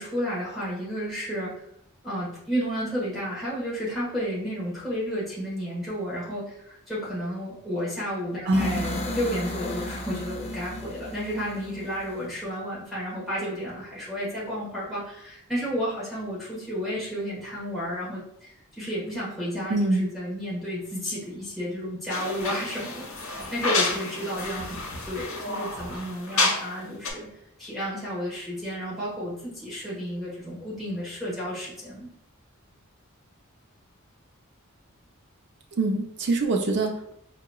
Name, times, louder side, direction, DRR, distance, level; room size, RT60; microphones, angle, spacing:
voice 1, 0.0-1.5 2.0-27.3 27.6-32.1, equal, ahead, -9 dB, 1.2 m, -32 dB
sound 1, 8.5-12.4, left 1 dB, 30° left, 0.5 m, -34 dB
voice 2, 8.5-8.9 19.7-20.1 35.8-37.1, right 2 dB, 55° right, 2 dB, 0.5 m, -24 dB
sound 2, 22.1-26.8 27.0-27.1, left 3 dB, 85° left, 0.8 m, -29 dB
4.7 x 2.9 x 2.3 m, 0.71 s
head